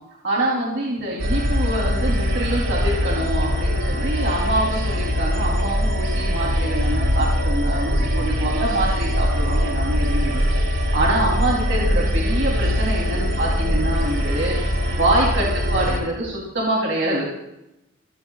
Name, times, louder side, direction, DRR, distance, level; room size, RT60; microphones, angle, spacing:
voice 1, 0.2-10.4 10.7-14.6 15.0-17.2, right 1 dB, 60° right, -4 dB, 3.4 m, -25 dB
sound 1, 1.2-16.0, equal, 85° right, 4.9 m, -22 dB
29.5 x 14.5 x 2.4 m, 0.87 s
head